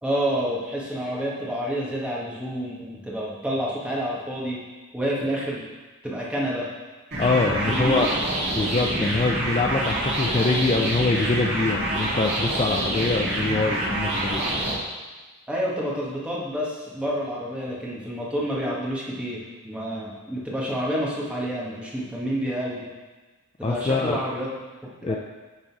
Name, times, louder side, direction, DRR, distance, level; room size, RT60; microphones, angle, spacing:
voice 1, 0.0-4.6 4.9-5.6 6.0-6.7 7.5-7.6 7.8-8.0 15.5-22.8 23.6-24.5 25.0-25.2, equal, 5° right, -5 dB, 1.4 m, -28 dB
sound 1, 7.1-14.7, right 1 dB, 50° right, 2.0 m, -26 dB
voice 2, 7.2-8.1 8.5-14.4 23.6-24.2 25.0-25.2, left 3 dB, 25° left, 1 dB, 0.3 m, -24 dB
9.7 x 3.8 x 4.7 m, 1.3 s
head